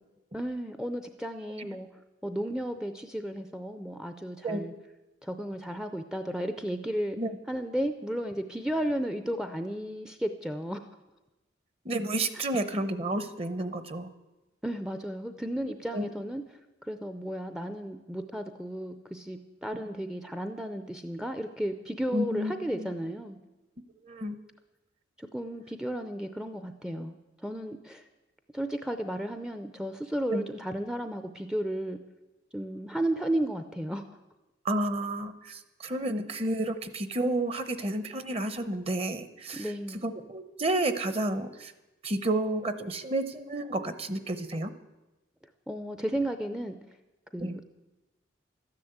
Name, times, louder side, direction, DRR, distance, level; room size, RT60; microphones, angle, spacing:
voice 1, 0.3-4.7 5.2-7.2 7.5-10.8 12.3-12.4 14.6-16.4 16.8-23.4 25.2-28.0 28.5-32.0 32.5-34.0 39.5-40.1 45.7-47.0 47.3-47.7, right 1 dB, 5° right, 8 dB, 0.5 m, -34 dB
voice 2, 11.8-14.1 15.9-16.1 22.1-22.9 24.0-24.4 30.3-30.4 34.6-39.7 40.0-41.7 42.0-44.7 47.4-47.6, right 1 dB, 30° right, 11 dB, 0.9 m, -31 dB
13.0 x 10.5 x 8.0 m, 1.1 s
head